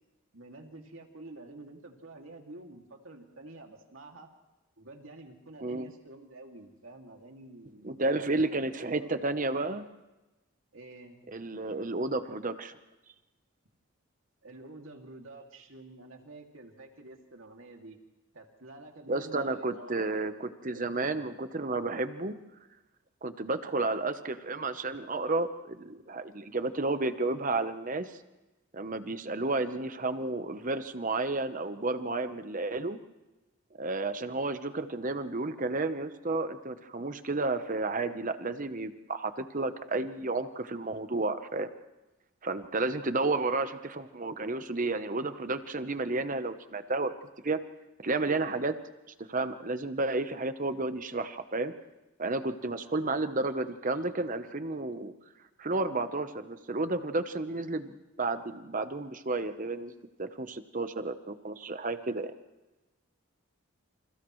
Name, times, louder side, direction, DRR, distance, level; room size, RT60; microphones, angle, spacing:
voice 1, 0.3-4.3 4.8-9.8 10.7-11.2 14.4-18.0 18.3-20.2 20.7-21.2, right 2 dB, 75° right, 2 dB, 2.5 m, -49 dB
voice 2, 7.8-9.8 11.3-12.8 19.1-22.3 23.2-28.1 28.7-33.0 33.8-41.7 42.4-47.1 47.4-47.6 48.0-48.8 49.3-51.7 52.2-55.1 55.6-59.9 60.2-62.3, right 2 dB, 40° right, 10 dB, 1.0 m, -32 dB
29.0 x 28.0 x 3.2 m, 1.1 s
head